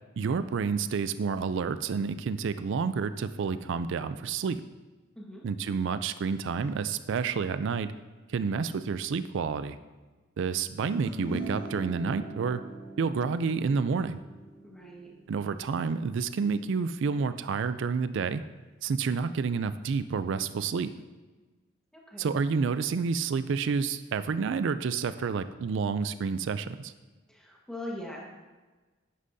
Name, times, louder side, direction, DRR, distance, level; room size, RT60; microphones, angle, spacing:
voice 1, 0.2-4.6 5.4-7.9 8.3-9.8 10.4-12.6 13.0-14.2 15.3-18.4 18.8-20.9 22.2-26.9, right 5 dB, 65° right, 12 dB, 0.4 m, -29 dB
sound 1, 11.0-17.6, right 2 dB, 20° right, 3.1 m, -42 dB
voice 2, 14.6-15.1 21.9-22.3 27.3-28.2, left 1 dB, 5° left, -3 dB, 1.4 m, -41 dB
11.0 x 9.8 x 2.7 m, 1.3 s
head